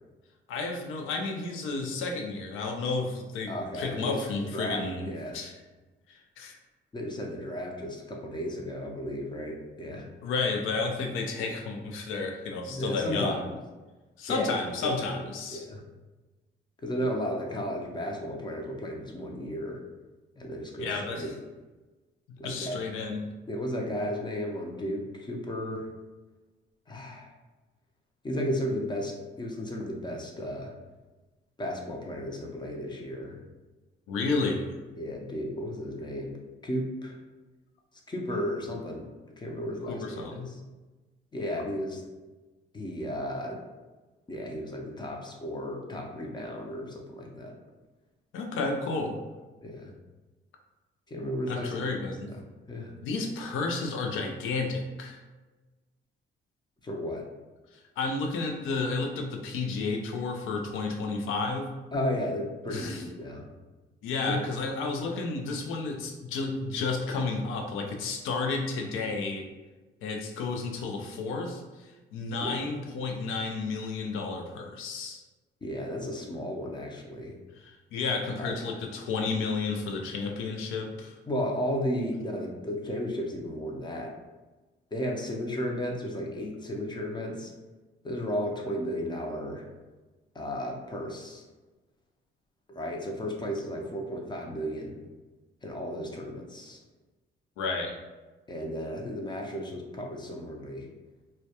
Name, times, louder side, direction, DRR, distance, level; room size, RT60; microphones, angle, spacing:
voice 1, 0.5-5.5 6.1-6.6 10.2-13.5 14.2-15.7 20.8-21.3 22.4-23.3 34.1-34.8 39.9-40.5 48.3-49.2 51.5-52.3 53.0-55.2 58.0-61.7 62.7-63.0 64.0-69.5 70.0-75.2 77.6-81.2 97.6-98.0, left 3 dB, 90° left, 2 dB, 0.4 m, -32 dB
voice 2, 3.5-4.2 4.5-5.4 6.9-10.0 12.7-13.5 14.3-15.2 15.5-15.8 16.8-19.8 20.4-21.3 22.4-22.8 23.5-25.9 26.9-27.3 28.2-30.7 31.6-33.4 35.0-36.4 36.6-37.1 38.1-39.1 39.4-40.6 41.3-42.0 42.7-43.6 44.3-47.5 49.6-49.9 51.1-52.0 52.3-52.9 56.8-57.2 61.9-63.5 64.3-64.5 72.4-72.6 75.6-77.4 78.4-78.6 81.3-84.1 84.9-87.5 88.0-89.6 90.3-91.4 92.7-95.0 95.6-96.8 98.5-100.9, equal, 20° left, 0 dB, 0.5 m, -34 dB
2.2 x 2.1 x 2.7 m, 1.2 s
cardioid pair, 90°, 20 cm